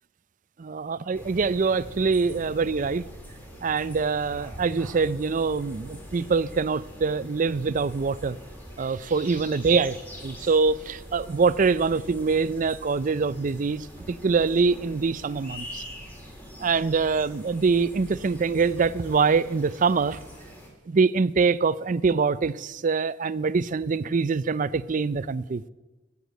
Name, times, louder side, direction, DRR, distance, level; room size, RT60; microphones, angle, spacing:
voice 1, 0.6-3.0 3.6-8.4 8.8-10.0 10.2-15.8 16.6-20.2 20.9-25.6, right 4 dB, 45° right, 0.5 m, -24 dB
sound 1, 1.1-20.7, equal, 10° left, 2.8 m, -45 dB
sound 2, 1.8-18.9, equal, 30° right, 1.6 m, -49 dB
14.0 x 8.4 x 8.1 m
head